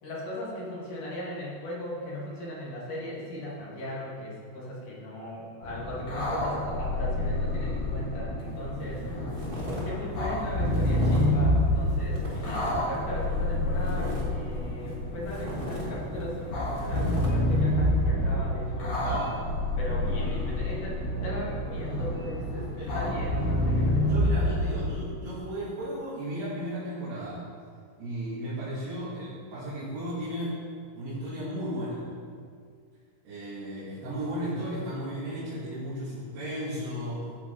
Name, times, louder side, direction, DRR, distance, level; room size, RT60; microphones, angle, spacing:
voice 1, 0.0-9.1 9.7-19.0 19.8-24.6, left 1 dB, 55° left, -6 dB, 3.6 m, -38 dB
sound 1, 5.6-24.9, left 1 dB, 40° left, 2.7 m, -28 dB
sound 2, 8.4-8.6 9.0-9.9 10.1-11.4 11.8-13.0 13.3-15.0 15.3-17.3, equal, 65° right, 0.5 m, -39 dB
sound 3, 16.5-17.3 18.0-20.3 21.0-22.2 22.9-23.2, right 3 dB, 90° left, 0.7 m, -36 dB
voice 2, 24.0-27.4 28.0-30.6 31.0-32.1 33.2-37.3, equal, 85° right, -12 dB, 5.0 m, -35 dB
14.0 x 8.8 x 4.2 m, 2.1 s
omnidirectional pair, 4.6 m